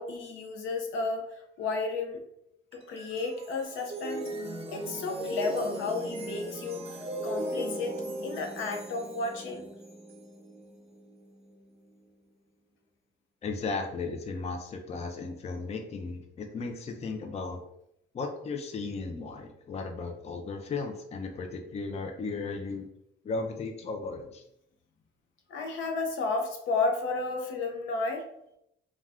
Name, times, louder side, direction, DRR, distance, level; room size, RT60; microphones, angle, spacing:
voice 1, 0.0-2.2 2.7-4.2 4.7-7.0 7.2-7.9 8.2-9.7 25.5-28.3, left 3 dB, 75° left, 3 dB, 0.6 m, -32 dB
sound 1, 2.7-12.0, right 1 dB, 30° right, 0.6 m, -38 dB
voice 2, 13.4-17.6 18.1-22.9 23.2-24.4, left 4 dB, 35° left, 4 dB, 0.4 m, -35 dB
2.4 x 2.3 x 3.3 m, 0.77 s
cardioid pair, 90°, 20 cm